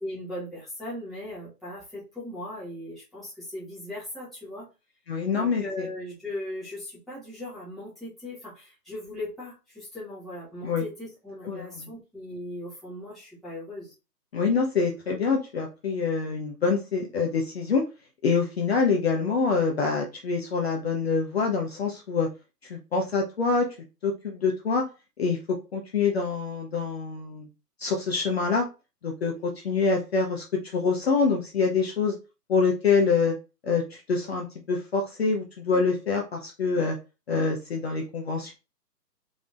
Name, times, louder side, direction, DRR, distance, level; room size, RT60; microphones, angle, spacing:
voice 1, 0.0-4.7 5.3-13.9, left 1 dB, ahead, -11 dB, 1.2 m, -38 dB
voice 2, 5.1-5.9 10.6-10.8 11.4-11.9 14.3-17.8 18.2-22.3 22.7-23.7 24.0-24.9 25.2-27.5 27.8-28.7 29.0-32.2 32.5-33.3 33.6-37.0 37.3-38.6, left 4 dB, 40° left, 1 dB, 0.7 m, -26 dB
3.9 x 3.5 x 2.4 m, 0.29 s
hypercardioid pair, 155°, 49 cm